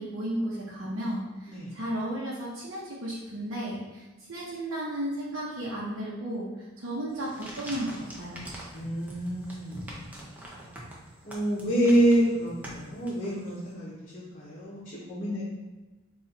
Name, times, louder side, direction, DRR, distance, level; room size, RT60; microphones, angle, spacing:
voice 1, 0.0-4.0 4.3-6.5 6.8-8.4, right 1 dB, 70° right, -7 dB, 0.8 m, -34 dB
sound 1, 7.1-13.6, right 1 dB, 10° right, 0.6 m, -44 dB
voice 2, 8.7-10.1 11.2-15.4, right 1 dB, 40° left, -8 dB, 0.8 m, -27 dB
4.1 x 2.4 x 4.0 m, 1.2 s
head